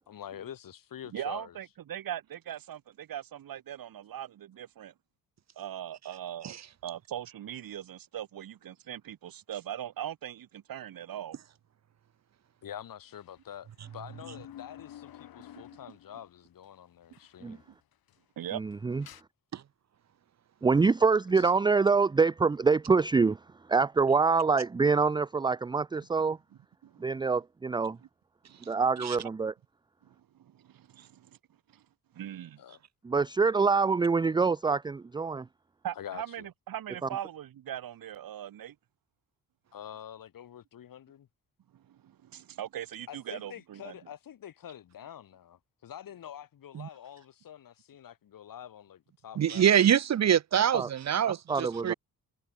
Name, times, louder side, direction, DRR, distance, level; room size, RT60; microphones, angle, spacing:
voice 1, 0.1-1.6 12.6-17.6 21.3-21.5 32.6-32.8 36.0-36.5 39.7-41.3 43.1-49.6, left 10 dB, 70° left, 7.0 m, -46 dB
voice 2, 1.1-4.9 5.6-6.5 6.8-11.4 18.4-18.6 26.8-27.2 27.9-28.0 28.5-28.8 30.0-31.3 31.7-31.8 32.1-32.6 35.8-38.8 41.7-44.0, right 11 dB, 75° right, 4.0 m, -40 dB
sound 1, 13.1-16.3 16.6-16.7 17.1-17.6 17.9-19.2, left 11 dB, 85° left, 6.0 m, -51 dB
voice 3, 18.5-19.0 20.6-23.4 23.7-26.4 27.0-28.0 28.7-29.5 33.0-35.5 50.7-50.9 51.2-51.9, right 4 dB, 15° right, 0.4 m, -25 dB
voice 4, 49.4-51.9, right 9 dB, 50° right, 0.9 m, -25 dB
cardioid pair, 135°, 35 cm